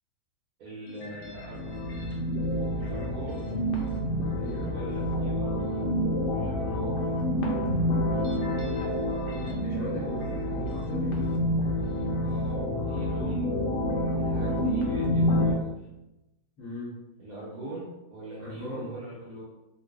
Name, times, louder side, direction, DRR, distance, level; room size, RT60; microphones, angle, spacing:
voice 1, 0.6-1.6 2.8-3.5 4.7-5.7 6.2-7.0 12.2-13.5 14.0-15.8 17.2-19.4, right 1 dB, 60° right, -7 dB, 1.1 m, -42 dB
sound 1, 0.9-15.5, left 1 dB, 70° left, 1.1 m, -28 dB
voice 2, 4.4-4.8 9.6-11.1 16.6-17.1 18.4-19.0, left 1 dB, 40° left, -11 dB, 1.4 m, -38 dB
3.1 x 2.5 x 2.4 m, 0.96 s
omnidirectional pair, 2.1 m